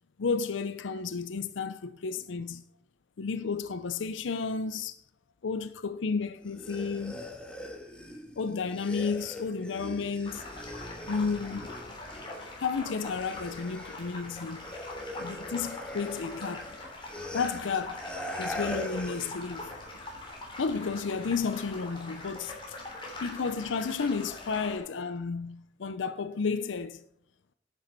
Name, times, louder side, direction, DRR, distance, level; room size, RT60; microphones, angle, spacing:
voice 1, 0.2-2.6 3.2-5.0 5.4-7.2 8.4-10.4 11.1-11.7 12.6-14.6 15.2-16.8 17.3-18.1 18.4-19.7 20.6-22.8 23.2-27.0, left 5 dB, 85° left, 0.5 m, -32 dB
sound 1, 6.4-12.6 12.9-19.4, left 1 dB, 5° left, 1.5 m, -41 dB
sound 2, 10.3-24.8, left 2 dB, 25° left, 3.3 m, -43 dB
10.5 x 8.1 x 4.0 m
head